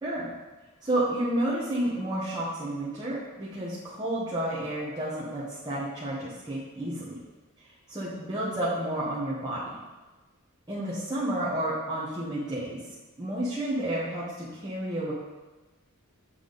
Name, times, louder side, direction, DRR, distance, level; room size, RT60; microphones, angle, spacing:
voice 1, 0.8-7.2 7.9-9.7 10.7-12.8 13.2-15.1, right 1 dB, 20° right, -9 dB, 1.0 m, -31 dB
7.4 x 3.4 x 3.9 m, 1.2 s
head